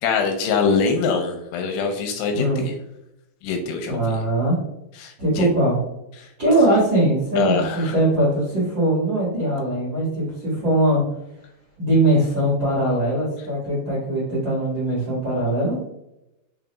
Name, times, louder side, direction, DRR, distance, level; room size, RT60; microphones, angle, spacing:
voice 1, 0.0-2.7 3.4-4.2 5.0-5.5 6.2-6.3 7.4-7.9, left 5 dB, 80° left, 4 dB, 2.6 m, -23 dB
voice 2, 2.3-2.6 3.9-4.6 5.2-5.8 6.4-11.0 11.8-15.9, right 1 dB, 50° right, -8 dB, 1.3 m, -21 dB
5.9 x 3.9 x 2.3 m, 0.86 s
omnidirectional pair, 4.9 m